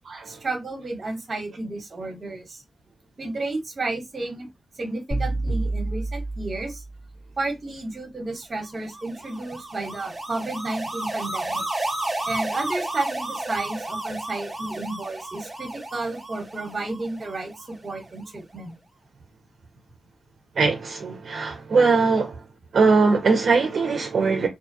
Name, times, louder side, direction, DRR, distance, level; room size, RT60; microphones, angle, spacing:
voice 1, 0.3-2.6 3.2-4.5 4.7-6.8 7.4-11.6 12.3-18.7, right 2 dB, 40° right, 1.1 m, -32 dB
sound 1, 5.1-7.2, right 2 dB, 10° left, 1.2 m, -28 dB
sound 2, 8.7-18.0, right 2 dB, 15° right, 1.0 m, -32 dB
voice 2, 20.6-22.4 22.7-24.5, right 4 dB, 65° right, 0.6 m, -20 dB
2.5 x 2.2 x 2.7 m
wide cardioid pair, 110°, 0 cm